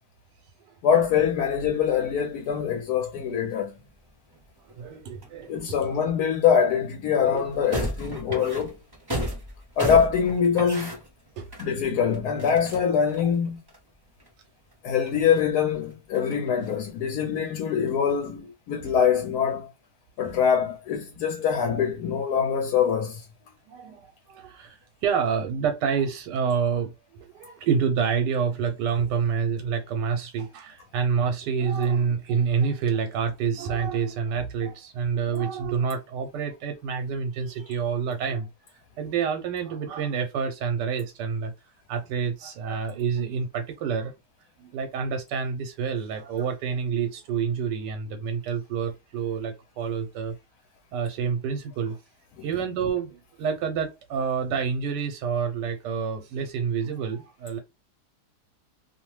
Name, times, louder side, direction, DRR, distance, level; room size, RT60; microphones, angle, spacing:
voice 1, 0.8-3.7 5.5-8.7 9.8-10.9 11.6-13.6 14.8-19.7 20.2-23.2 52.4-52.5, left 7 dB, 70° left, 1.1 m, -24 dB
sound 1, 0.9-6.3 6.9-7.0 7.3-14.3 14.7-14.8 15.0-17.1 17.5-18.4, equal, 30° right, 0.4 m, -37 dB
voice 2, 4.6-5.5 7.2-7.5 11.4-11.7 12.5-12.6 13.2-13.3 23.7-26.9 27.2-38.5 39.0-41.5 41.9-44.1 44.6-50.3 50.9-52.0 52.4-57.6, right 6 dB, 85° right, 1.2 m, -28 dB
2.8 x 2.1 x 3.0 m
omnidirectional pair, 1.8 m